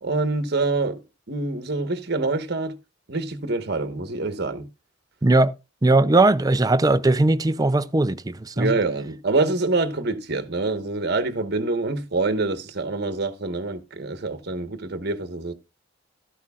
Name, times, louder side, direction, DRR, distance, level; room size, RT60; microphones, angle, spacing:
voice 1, 0.0-1.0 1.3-2.8 3.1-4.7 8.6-15.5, right 3 dB, 55° right, 1.2 m, -26 dB
voice 2, 5.2-5.5 5.8-8.7, right 2 dB, 20° right, 0.5 m, -19 dB
13.5 x 11.5 x 2.4 m
head